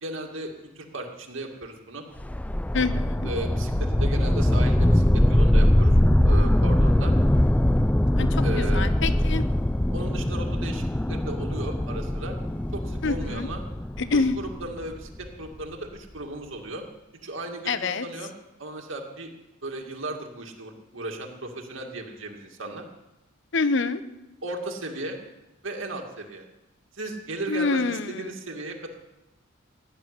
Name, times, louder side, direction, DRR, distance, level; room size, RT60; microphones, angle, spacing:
voice 1, 0.0-2.0 3.2-5.9 6.2-7.1 8.4-8.9 9.9-12.4 12.7-13.6 14.1-16.9 17.2-17.7 18.0-18.3 18.6-19.3 19.6-22.8 24.4-25.2 25.6-26.4 27.0-28.9, right 2 dB, 75° right, 2 dB, 2.2 m, -35 dB
sound 1, 2.2-15.3, left 1 dB, 5° left, 0.4 m, -22 dB
voice 2, 2.7-3.3 8.2-9.4 13.0-13.5 14.0-14.3 17.7-18.1 23.5-24.0 27.5-28.3, left 4 dB, 65° left, 12 dB, 0.8 m, -26 dB
16.0 x 7.5 x 9.7 m, 0.97 s
head